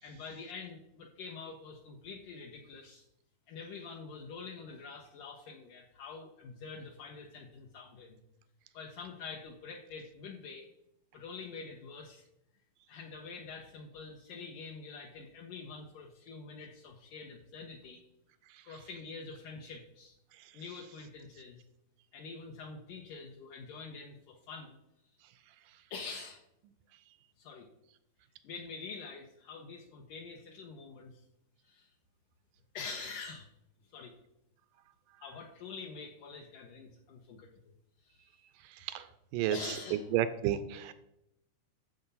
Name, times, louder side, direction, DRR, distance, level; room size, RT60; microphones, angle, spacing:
voice 1, 0.0-3.1 3.5-8.2 8.7-10.7 11.1-12.2 12.9-18.0 18.6-20.1 20.5-21.6 22.1-24.8 25.9-26.4 27.4-27.7 28.4-31.2 31.6-31.9 32.7-33.5 33.9-34.1 35.2-37.7 38.0-38.3 39.5-40.1, left 4 dB, 70° left, 0 dB, 2.3 m, -46 dB
voice 2, 39.9-40.9, right 11 dB, 80° right, 11 dB, 2.0 m, -31 dB
10.5 x 7.3 x 5.6 m, 0.83 s
omnidirectional pair, 4.3 m